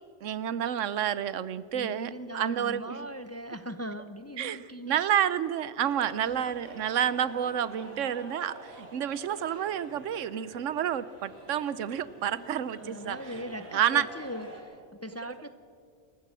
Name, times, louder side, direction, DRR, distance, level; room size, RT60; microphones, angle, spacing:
voice 1, 0.2-3.0 4.4-4.6 4.9-13.2 13.7-14.1, right 9 dB, 85° right, 17 dB, 1.1 m, -29 dB
voice 2, 1.7-5.0 6.0-6.5 7.2-8.1 12.3-15.5, equal, 15° left, 11 dB, 0.6 m, -41 dB
sound 1, 5.8-14.6, right 1 dB, 55° right, 5.4 m, -48 dB
27.5 x 14.5 x 7.4 m, 2.3 s
omnidirectional pair, 1.3 m